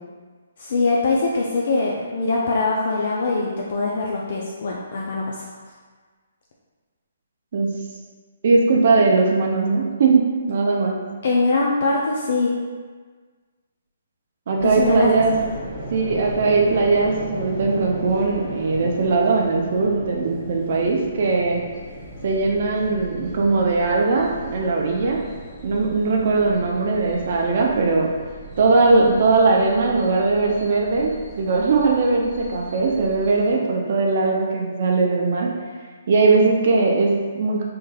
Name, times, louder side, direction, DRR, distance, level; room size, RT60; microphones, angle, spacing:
voice 1, 0.6-5.4 11.2-12.5 14.6-15.5, left 3 dB, 60° left, -3 dB, 0.4 m, -22 dB
voice 2, 8.4-10.2 10.5-11.0 14.5-15.4 15.9-21.6 22.2-25.2 25.6-28.1 28.6-35.5 36.1-37.6, right 3 dB, 55° right, 0 dB, 0.5 m, -19 dB
sound 1, 14.6-33.5, right 1 dB, 10° left, 1.2 m, -37 dB
3.5 x 3.1 x 2.3 m, 1.5 s
hypercardioid pair, 150°, 0 cm